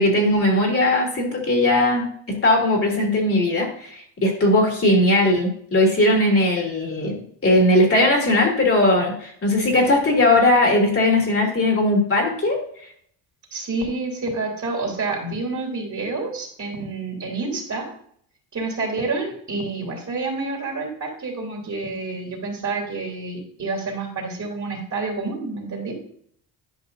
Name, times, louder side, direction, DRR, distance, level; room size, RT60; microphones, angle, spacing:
voice 1, 0.0-12.6, left 1 dB, 30° left, 0 dB, 2.7 m, -19 dB
voice 2, 13.5-17.9 18.5-25.9, right 3 dB, 40° right, 0 dB, 3.1 m, -28 dB
11.0 x 5.4 x 2.7 m, 0.63 s
cardioid pair, 90°, 44 cm